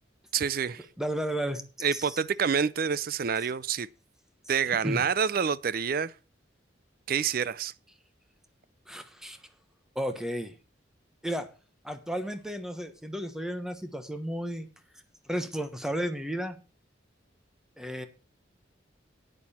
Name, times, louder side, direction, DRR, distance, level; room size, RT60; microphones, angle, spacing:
voice 1, 0.3-0.9 1.8-3.9 4.5-6.1 7.1-7.7, right 6 dB, 50° right, 0.5 m, -27 dB
voice 2, 1.0-1.6 1.9-2.2 4.8-5.0 8.9-9.4 9.9-10.5 11.2-11.5 11.8-14.7 15.2-16.6 17.8-18.1, equal, 5° right, 1.1 m, -33 dB
10.5 x 9.1 x 4.3 m
head